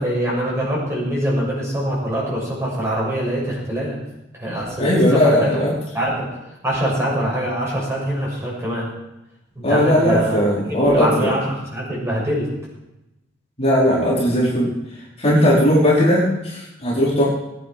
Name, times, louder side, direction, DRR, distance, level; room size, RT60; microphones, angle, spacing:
voice 1, 0.0-4.0 4.3-5.6 5.9-6.3 6.6-8.9 9.5-10.4 10.7-12.5, right 1 dB, 15° right, -4 dB, 6.7 m, -24 dB
voice 2, 4.8-5.7 9.6-11.3 13.6-14.7 15.2-17.2, equal, 35° left, -6 dB, 4.5 m, -17 dB
20.5 x 9.6 x 6.0 m, 0.95 s
head